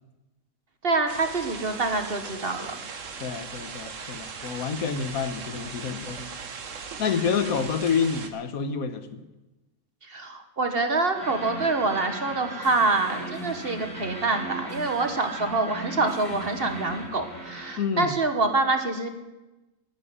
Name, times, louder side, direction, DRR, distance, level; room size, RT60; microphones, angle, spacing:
voice 1, 0.8-2.7 10.0-19.1, right 3 dB, 40° right, 7 dB, 1.4 m, -26 dB
sound 1, 1.1-8.3, right 5 dB, 60° right, 1.5 m, -39 dB
voice 2, 3.2-6.3 7.0-9.2 17.8-18.1, left 6 dB, 70° left, 10 dB, 1.5 m, -28 dB
sound 2, 11.1-17.7, right 1 dB, 15° left, 6.0 m, -37 dB
10.5 x 10.0 x 9.9 m, 1.1 s
omnidirectional pair, 1.6 m